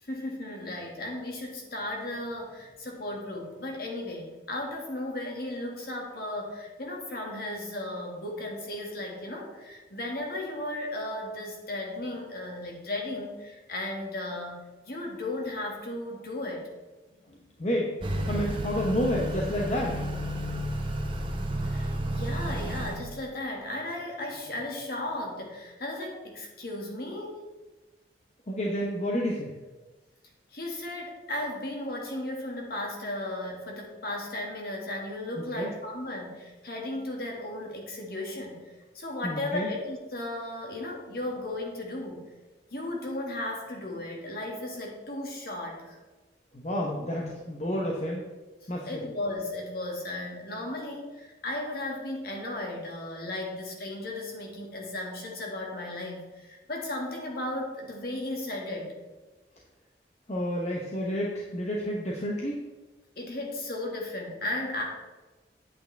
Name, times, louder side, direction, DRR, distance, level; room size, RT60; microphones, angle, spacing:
voice 1, 0.0-14.6 14.9-16.7 21.6-27.4 30.5-38.6 38.9-42.2 42.7-46.0 48.6-58.9 63.2-64.8, left 1 dB, 55° left, 0 dB, 1.9 m, -35 dB
voice 2, 17.3-17.9 18.3-20.1 28.5-29.5 35.4-35.7 39.2-39.7 46.5-48.2 48.7-49.0 60.3-62.7, equal, 40° left, -2 dB, 0.9 m, -30 dB
Motor vehicle (road) / Accelerating revving vroom, 18.0-23.0, equal, 30° right, 1.0 m, -31 dB
8.7 x 8.2 x 3.4 m, 1.2 s
head